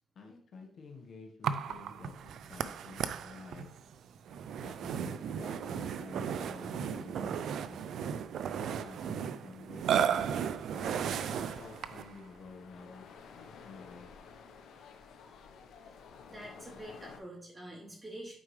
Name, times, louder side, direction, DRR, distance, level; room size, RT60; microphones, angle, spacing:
voice 1, 0.1-3.7 4.6-7.9 8.6-10.5 10.8-14.2, left 3 dB, 55° left, 2 dB, 1.3 m, -51 dB
Burping eructation, 1.4-12.1, right 8 dB, 70° right, 0.4 m, -35 dB
sound 1, 10.7-17.2, left 5 dB, 75° left, 0.9 m, -52 dB
voice 2, 16.3-18.4, right 1 dB, 25° right, -3 dB, 3.2 m, -46 dB
8.9 x 4.7 x 3.2 m, 0.66 s
cardioid pair, 90°, 0 cm